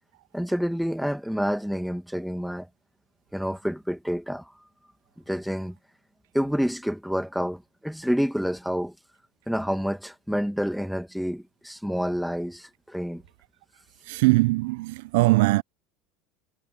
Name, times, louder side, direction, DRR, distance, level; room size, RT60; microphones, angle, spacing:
voice 1, 0.3-2.7 3.3-4.5 5.3-5.8 6.3-8.9 9.5-13.2, equal, ahead, 1.8 m, -28 dB
voice 2, 14.1-15.6, right 22 dB, 75° right, 0.4 m, -21 dB
supercardioid pair, 95°, 0 cm